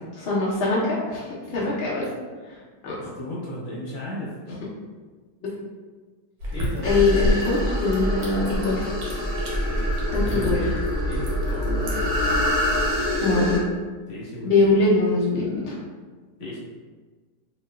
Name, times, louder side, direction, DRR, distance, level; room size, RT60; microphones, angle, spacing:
voice 1, 0.3-2.0 2.5-3.0 6.8-8.9 10.0-10.6 13.2-13.6 14.4-15.7, left 3 dB, 80° left, -6 dB, 0.5 m, -23 dB
voice 2, 1.5-1.9 3.0-4.6 6.5-6.9 10.2-10.5 11.1-12.3 14.1-14.7 15.5-15.7 16.4-16.6, left 1 dB, 45° left, -6 dB, 0.9 m, -35 dB
sound 1, 6.4-12.6, left 1 dB, 80° right, 1.4 m, -32 dB
sound 2, 6.8-13.6, left 1 dB, 30° right, 0.4 m, -25 dB
3.2 x 2.8 x 2.2 m, 1.4 s
omnidirectional pair, 1.9 m